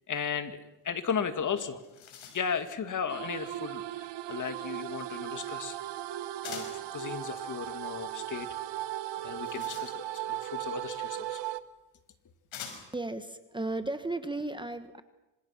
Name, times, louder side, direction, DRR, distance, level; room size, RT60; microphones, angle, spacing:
voice 1, 0.1-1.8 2.3-5.8 6.5-8.5 9.2-11.5, left 7 dB, 40° left, 9 dB, 2.2 m, -35 dB
sound 1, 1.3-1.4 1.7-2.7 6.4-6.9 9.1-10.3 11.4-11.5 12.5-13.1, left 7 dB, 85° left, 5.8 m, -45 dB
sound 2, 3.1-11.6, right 13 dB, 65° right, 1.1 m, -37 dB
voice 2, 12.9-15.0, right 2 dB, 10° right, 9 dB, 1.2 m, -35 dB
26.5 x 26.0 x 5.9 m, 1.0 s
cardioid pair, 115°, 45 cm